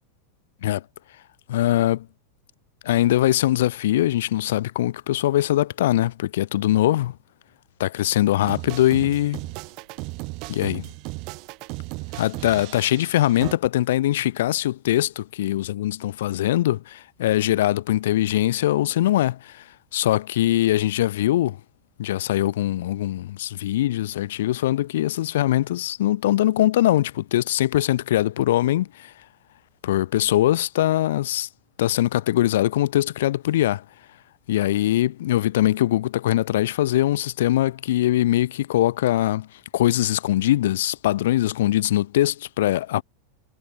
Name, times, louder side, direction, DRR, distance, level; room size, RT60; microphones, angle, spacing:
voice 1, 1.5-2.1 2.8-7.1 7.8-9.4 10.5-10.9 12.1-21.6 22.0-29.1 29.8-31.5 31.8-33.8 34.5-43.0, left 14 dB, 55° left, 0.4 m, -22 dB
sound 1, 8.4-13.5, right 28 dB, 45° right, 0.7 m, -36 dB
figure-of-eight pair, 90°, 0 cm